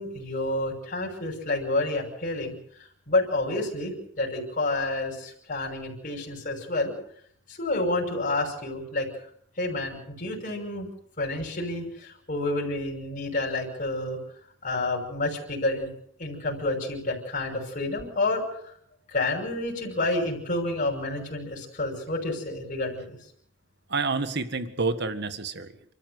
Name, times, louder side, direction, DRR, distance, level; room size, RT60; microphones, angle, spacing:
voice 1, 0.0-2.6 3.1-6.9 7.5-9.1 9.6-10.9 11.2-14.2 14.6-15.9 16.2-18.7 19.1-23.2, left 2 dB, 45° left, -1 dB, 5.9 m, -29 dB
voice 2, 23.9-25.9, right 3 dB, 60° right, 10 dB, 1.8 m, -29 dB
29.5 x 13.0 x 8.0 m, 0.68 s
head